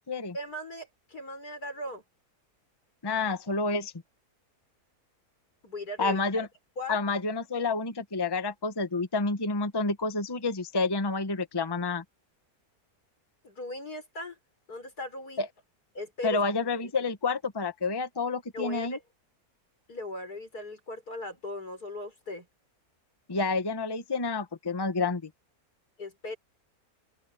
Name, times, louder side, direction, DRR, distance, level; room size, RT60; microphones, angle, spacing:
voice 1, 0.3-2.0 5.6-6.5 6.8-7.2 13.4-14.4 14.7-15.4 15.9-16.4 18.5-19.0 19.9-22.5 26.0-26.4, left 1 dB, 80° left, 6.0 m, -38 dB
voice 2, 3.0-3.9 6.0-6.5 6.9-12.0 15.4-15.5 16.2-19.0 23.3-25.3, left 3 dB, 20° left, 1.0 m, -29 dB
open air
omnidirectional pair, 1.6 m